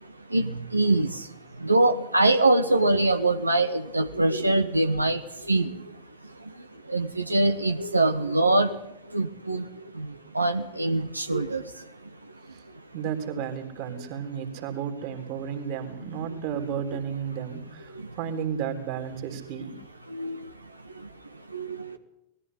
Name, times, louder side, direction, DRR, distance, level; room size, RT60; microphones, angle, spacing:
voice 1, 0.3-1.1 1.6-5.2 5.5-5.7 6.9-8.8 9.1-9.6 10.0-10.1 10.3-11.6 20.1-20.4 21.5-21.9, right 2 dB, 85° right, 8 dB, 1.2 m, -23 dB
voice 2, 12.9-19.8, right 8 dB, 45° right, 5 dB, 3.6 m, -33 dB
20.0 x 15.0 x 9.9 m, 0.82 s
figure-of-eight pair, 90°, 0 cm